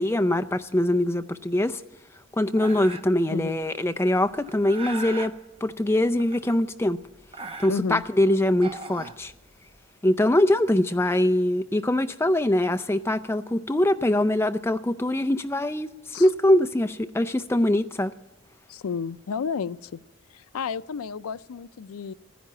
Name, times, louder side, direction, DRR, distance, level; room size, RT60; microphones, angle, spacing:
voice 1, 0.0-1.8 2.3-5.3 5.6-7.0 7.6-9.3 10.0-18.1, left 1 dB, 10° left, 0.4 m, -23 dB
sound 1, 2.6-3.2 4.1-5.3 6.2-6.8 7.1-8.0 8.5-9.7, right 3 dB, 25° right, 0.7 m, -39 dB
voice 2, 7.7-8.0 16.1-16.3 18.7-20.0 20.3-22.1, left 6 dB, 90° left, 0.4 m, -31 dB
14.0 x 10.5 x 8.6 m
head